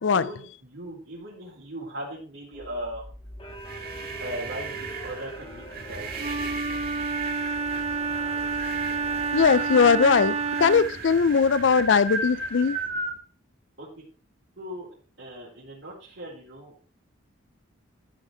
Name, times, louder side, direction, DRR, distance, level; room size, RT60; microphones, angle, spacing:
voice 1, 0.1-3.1 4.2-6.8 13.8-14.0 14.6-14.9 15.2-16.7, right 1 dB, 70° right, 4.2 m, -39 dB
sound 1, 2.5-9.5, right 1 dB, 25° left, 2.1 m, -43 dB
sound 2, 3.4-13.2, right 3 dB, 50° right, 1.9 m, -36 dB
Wind instrument woodwind instrument, 6.2-11.0, right 4 dB, 35° right, 0.8 m, -29 dB
voice 2, 9.3-12.8, left 5 dB, 65° left, 0.4 m, -20 dB
13.0 x 5.6 x 4.5 m
head